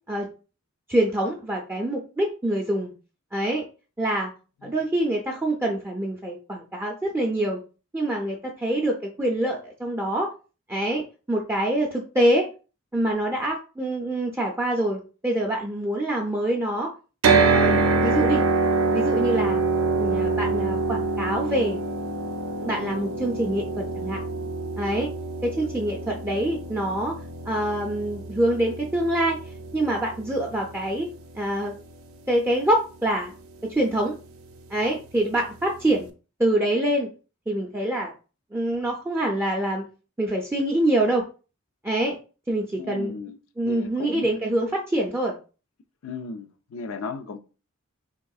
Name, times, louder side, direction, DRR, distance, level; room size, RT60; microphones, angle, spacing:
voice 1, 0.9-2.9 3.3-3.7 4.0-4.3 4.6-7.6 7.9-10.3 10.7-12.5 12.9-16.9 17.3-18.4 18.9-19.6 20.0-21.8 22.6-24.2 24.8-25.1 25.4-27.1 27.5-29.4 29.7-31.1 31.4-31.7 32.3-33.3 33.6-34.2 34.7-36.1 36.4-37.1 37.5-38.1 38.5-39.8 40.2-41.2 41.8-42.2 42.5-43.2 43.6-45.3, right 1 dB, 10° right, 0.4 m, -25 dB
sound 1, 17.2-31.4, right 3 dB, 85° right, 0.5 m, -25 dB
voice 2, 42.8-43.4 43.6-44.3 46.0-47.4, left 4 dB, 75° left, 0.5 m, -35 dB
3.6 x 3.3 x 2.3 m
head